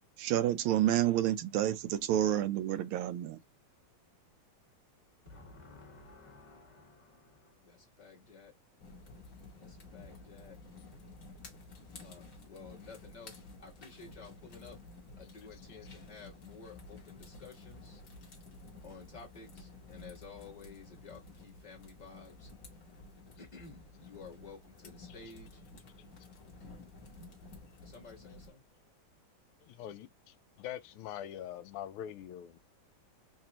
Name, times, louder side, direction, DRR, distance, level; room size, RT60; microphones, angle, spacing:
voice 1, 0.2-3.4, right 12 dB, 80° right, 1.4 m, -29 dB
voice 2, 5.2-8.5 9.5-10.6 12.0-14.8 15.1-18.0 18.8-22.5 23.4-25.6 27.8-28.6, left 4 dB, 25° left, 1.2 m, -53 dB
sound 1, 8.8-28.5, left 3 dB, 50° left, 1.4 m, -52 dB
voice 3, 29.6-32.6, left 11 dB, 85° left, 1.5 m, -44 dB
4.0 x 2.6 x 2.8 m
omnidirectional pair, 2.3 m